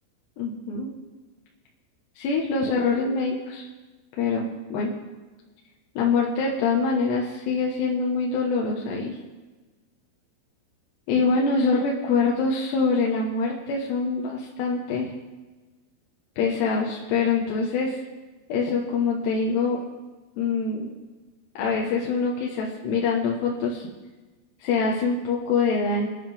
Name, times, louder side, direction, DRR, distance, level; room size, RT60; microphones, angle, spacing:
voice 1, 0.4-0.9 2.2-3.7 4.2-4.9 6.0-9.2 11.1-15.1 16.4-18.0 18.5-19.8 20.4-20.9 21.6-23.9 24.6-26.1, left 4 dB, 65° left, -2 dB, 3.1 m, -24 dB
28.0 x 10.5 x 3.6 m, 1.2 s
omnidirectional pair, 5.9 m